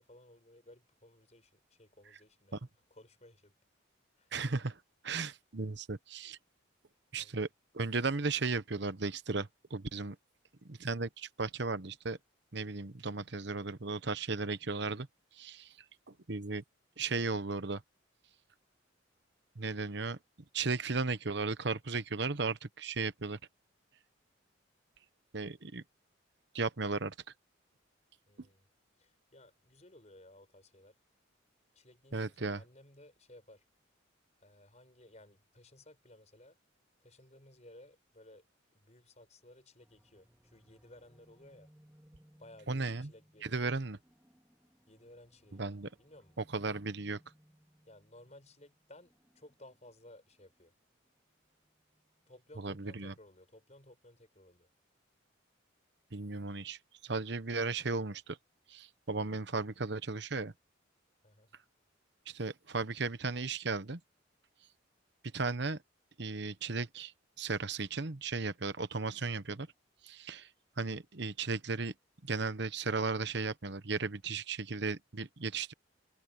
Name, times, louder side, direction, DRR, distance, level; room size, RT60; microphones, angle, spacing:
voice 1, 0.0-2.6 2.9-3.5 4.2-4.3 7.1-7.4 28.3-28.7 29.0-31.0 31.7-33.6 34.4-36.6 37.0-38.4 38.7-41.7 42.4-43.6 44.9-45.6 46.0-46.4 47.9-50.7 52.3-54.7 57.5-57.8 61.2-61.5, left 1 dB, 35° left, 6.5 m, -58 dB
voice 2, 4.3-4.8 5.0-6.4 7.1-7.5 7.7-10.2 10.6-12.2 12.5-15.1 15.3-15.7 16.1-16.6 17.0-17.8 19.6-20.2 20.5-23.4 25.3-25.8 26.5-27.1 32.1-32.6 42.7-43.1 43.5-44.0 45.6-45.9 46.5-47.2 52.6-53.1 56.1-58.4 58.7-60.5 62.3-64.0 65.3-65.8 66.2-67.1 67.4-69.7 70.0-70.5 70.8-71.9 72.2-75.7, right 4 dB, 60° right, 1.1 m, -35 dB
sound 1, 39.8-52.5, equal, 10° right, 2.8 m, -67 dB
head